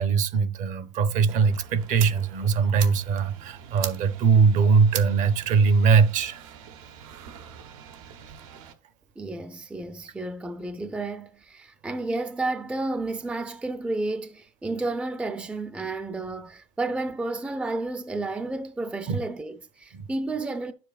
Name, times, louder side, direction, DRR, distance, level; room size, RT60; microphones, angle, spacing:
voice 1, 0.0-6.4 19.1-19.2 19.9-20.1, right 5 dB, 50° right, 0.8 m, -21 dB
sound 1, 1.3-8.7, right 9 dB, 85° right, 1.0 m, -40 dB
voice 2, 9.2-20.7, right 2 dB, 5° right, 0.5 m, -31 dB
9.9 x 7.4 x 2.4 m
supercardioid pair, 125°, 17 cm